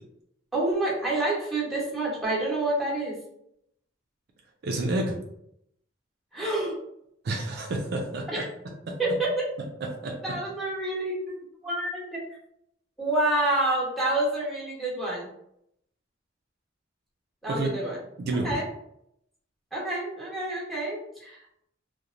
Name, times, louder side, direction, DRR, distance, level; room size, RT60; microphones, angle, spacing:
voice 1, 0.5-3.1 6.3-6.8 8.3-8.4 9.0-9.3 10.2-11.1 11.6-12.2 13.0-15.3 17.4-18.0 18.4-18.7 19.7-21.4, right 2 dB, ahead, -6 dB, 0.9 m, -28 dB
voice 2, 4.6-5.2 7.2-8.4 8.9-9.0 10.0-10.3 17.5-17.7 18.2-18.6, right 2 dB, 55° right, 2 dB, 0.4 m, -29 dB
2.9 x 2.1 x 2.4 m, 0.76 s
head